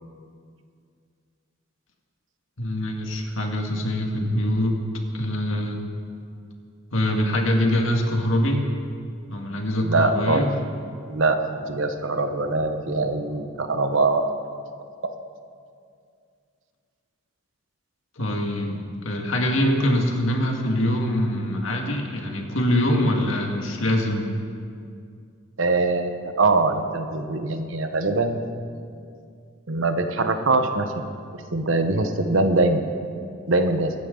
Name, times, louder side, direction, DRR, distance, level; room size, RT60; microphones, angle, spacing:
voice 1, 2.6-4.7 5.1-5.8 6.9-8.6 9.3-10.5 18.2-24.3, left 1 dB, 85° left, 2 dB, 1.9 m, -24 dB
voice 2, 9.8-10.5 11.1-11.4 11.7-14.3 25.6-28.4 29.7-30.9 31.5-32.8 33.5-33.9, right 3 dB, 80° right, 7 dB, 1.1 m, -22 dB
24.0 x 10.5 x 3.9 m, 2.3 s
head